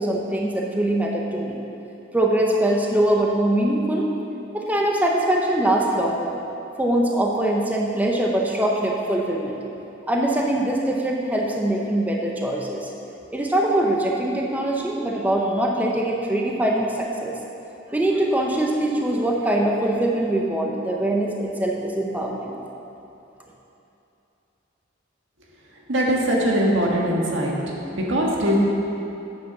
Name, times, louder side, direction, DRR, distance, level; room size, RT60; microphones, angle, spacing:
voice 1, 0.0-1.6 2.1-4.1 4.5-6.4 6.8-9.6 10.1-12.9 13.3-17.3 17.9-22.5, right 1 dB, 10° right, -1 dB, 0.7 m, -22 dB
voice 2, 25.9-27.5 27.9-28.6, equal, 75° right, -2 dB, 1.6 m, -21 dB
8.6 x 6.8 x 6.0 m, 2.9 s
head